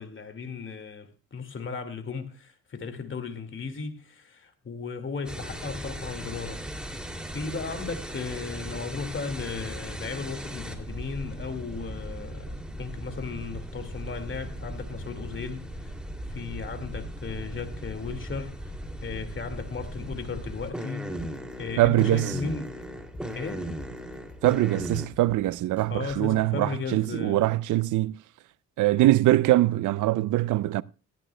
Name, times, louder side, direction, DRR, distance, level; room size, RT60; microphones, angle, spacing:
voice 1, 0.0-6.6 7.3-15.9 16.3-21.1 21.6-22.8 23.3-23.7 25.9-27.5, left 5 dB, 40° left, 2.1 m, -36 dB
sound 1, 5.3-25.1, right 1 dB, 5° right, 2.7 m, -37 dB
sound 2, 21.2-26.4, left 2 dB, 20° left, 3.6 m, -47 dB
voice 2, 21.8-22.3 24.4-28.2 28.8-30.8, right 16 dB, 75° right, 0.5 m, -23 dB
17.0 x 13.5 x 2.2 m
cardioid pair, 90°, 30 cm